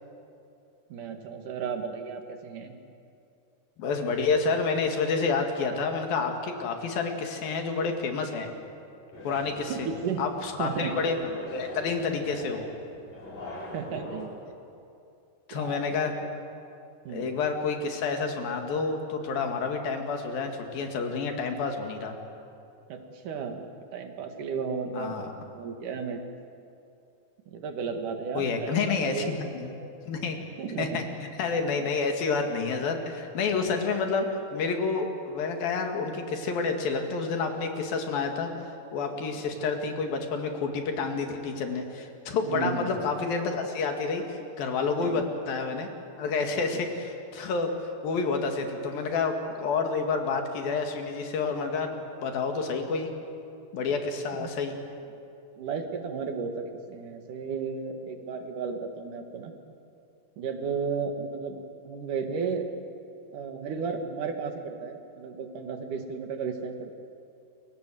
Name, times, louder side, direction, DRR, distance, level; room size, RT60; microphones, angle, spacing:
voice 1, 0.9-2.7 9.7-10.3 10.6-10.9 13.7-14.3 15.5-15.8 17.0-17.3 22.9-23.7 23.9-26.2 27.5-29.9 30.6-31.0 33.6-33.7 42.5-42.9 45.0-45.2 46.7-46.8 54.4-54.5 55.6-59.5 60.4-62.7 63.3-66.9, right 5 dB, 65° right, 5 dB, 3.3 m, -34 dB
voice 2, 3.8-8.5 9.2-9.9 10.2-12.7 15.5-16.1 17.1-22.2 24.9-25.3 28.4-29.7 30.1-30.4 30.8-31.0 31.4-38.5 38.9-45.9 46.2-53.1 53.7-54.8, left 4 dB, 80° left, 4 dB, 4.0 m, -29 dB
sound 1, 9.1-14.2, left 1 dB, 50° left, 6.6 m, -41 dB
28.5 x 23.0 x 7.7 m, 2.6 s
omnidirectional pair, 4.1 m